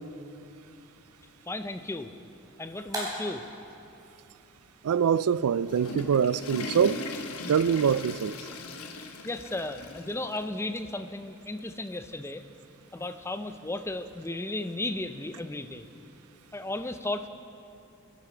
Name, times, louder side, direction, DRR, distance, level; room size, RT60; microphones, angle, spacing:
voice 1, 1.5-2.1 2.6-3.4 7.8-7.9 9.2-12.4 12.9-15.8 16.5-17.3, left 2 dB, 10° left, 0.5 m, -34 dB
sound 1, 2.4-7.8, right 1 dB, 15° right, 3.7 m, -44 dB
voice 2, 4.8-7.0 7.5-8.4, right 7 dB, 85° right, 0.4 m, -24 dB
Water / Toilet flush, 5.4-10.4 10.8-10.9 11.6-11.7 13.0-13.1, left 2 dB, 85° left, 1.1 m, -39 dB
22.0 x 11.0 x 4.5 m
head